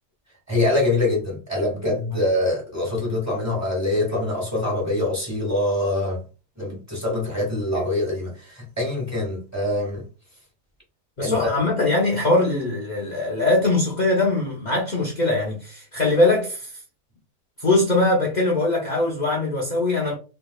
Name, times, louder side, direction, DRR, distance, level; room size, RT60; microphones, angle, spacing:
voice 1, 0.5-6.2 6.6-10.0 11.2-11.5, left 2 dB, 10° right, 1.6 m, -24 dB
voice 2, 11.2-16.7 17.6-20.2, left 2 dB, 50° left, 0.5 m, -21 dB
3.4 x 3.2 x 2.3 m
omnidirectional pair, 1.8 m